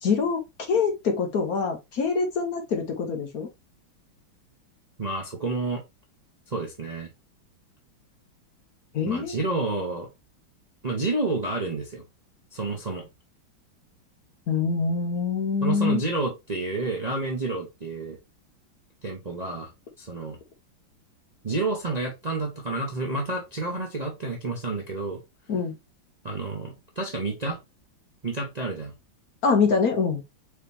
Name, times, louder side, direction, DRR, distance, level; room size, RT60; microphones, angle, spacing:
voice 1, 0.0-3.5 8.9-9.4 14.5-16.0 25.5-25.7 29.4-30.2, left 5 dB, 55° left, 1.2 m, -25 dB
voice 2, 5.0-5.8 6.5-7.1 9.0-10.1 10.8-12.0 12.5-13.1 15.6-18.2 19.0-19.7 20.0-20.4 21.4-25.2 26.2-27.6 28.2-28.9, right 2 dB, 35° right, 0.7 m, -29 dB
4.8 x 3.0 x 3.4 m
omnidirectional pair, 2.1 m